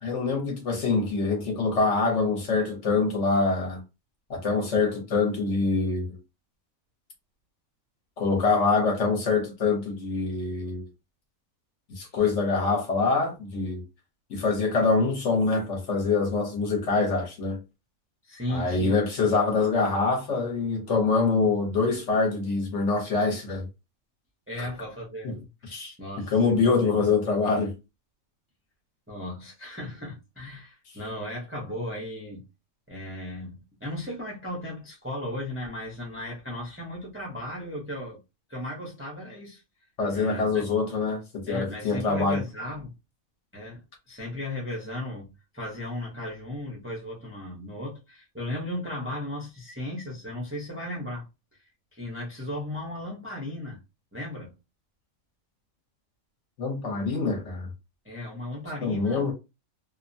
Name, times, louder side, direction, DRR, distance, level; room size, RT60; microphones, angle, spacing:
voice 1, 0.0-3.8 4.3-6.2 8.2-10.9 12.0-13.8 14.3-17.6 18.5-23.7 24.6-24.7 25.2-25.4 25.7-25.9 26.3-27.7 40.0-42.4 56.6-57.7 58.8-59.3, left 4 dB, 60° left, 1.1 m, -25 dB
voice 2, 18.2-19.0 24.5-25.4 25.7-27.1 29.1-32.4 32.9-38.2 38.5-39.6 40.1-40.6 41.5-42.9 43.5-43.8 44.1-51.3 51.9-53.8 54.1-54.5 58.0-59.3, left 1 dB, 15° right, 0.5 m, -36 dB
2.7 x 2.2 x 2.6 m
omnidirectional pair, 1.4 m